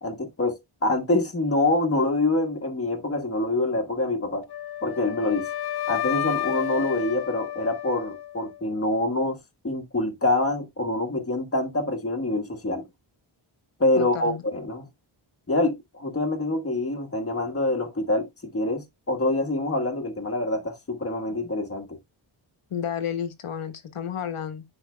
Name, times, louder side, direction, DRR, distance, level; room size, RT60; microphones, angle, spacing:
voice 1, 0.0-4.4 4.8-5.5 5.9-9.4 9.6-12.8 13.8-14.9 15.5-18.3 18.5-22.0, left 2 dB, 30° left, 1.4 m, -25 dB
Wind instrument woodwind instrument, 4.5-8.6, left 12 dB, 50° left, 0.5 m, -31 dB
voice 2, 14.0-14.4 22.7-24.6, left 8 dB, 85° left, 1.3 m, -31 dB
10.0 x 4.9 x 2.2 m
wide cardioid pair, 100°, 50 cm